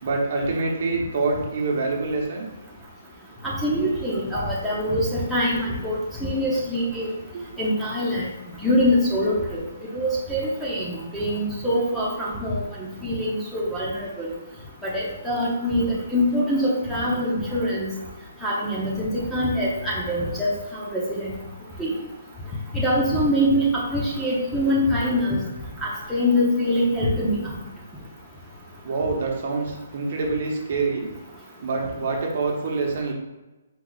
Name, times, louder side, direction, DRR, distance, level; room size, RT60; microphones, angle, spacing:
voice 1, 0.0-2.5 28.8-31.1 31.6-33.1, right 3 dB, 50° right, 0 dB, 0.9 m, -26 dB
voice 2, 3.4-7.1 7.6-8.3 8.6-9.6 9.9-14.3 14.8-17.9 18.4-21.3 21.8-21.9 22.7-25.4 25.8-27.4, equal, ahead, -8 dB, 0.7 m, -24 dB
4.6 x 2.4 x 3.9 m, 1.1 s
hypercardioid pair, 165°, 0 cm